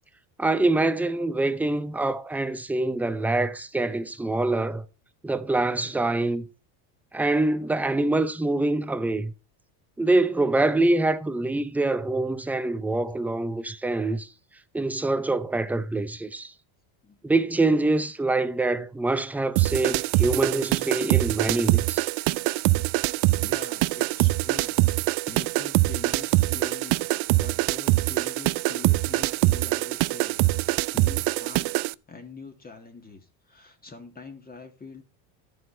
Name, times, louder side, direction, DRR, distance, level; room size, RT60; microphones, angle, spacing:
voice 1, 0.4-4.8 5.2-6.5 7.1-9.3 10.0-14.3 14.7-16.5 17.2-22.1, right 2 dB, 5° right, 0.6 m, -25 dB
sound 1, 19.6-31.9, right 21 dB, 55° right, 0.5 m, -24 dB
voice 2, 23.3-27.1 27.3-35.0, left 4 dB, 20° left, 1.8 m, -44 dB
12.0 x 7.9 x 4.3 m
supercardioid pair, 130°, 49 cm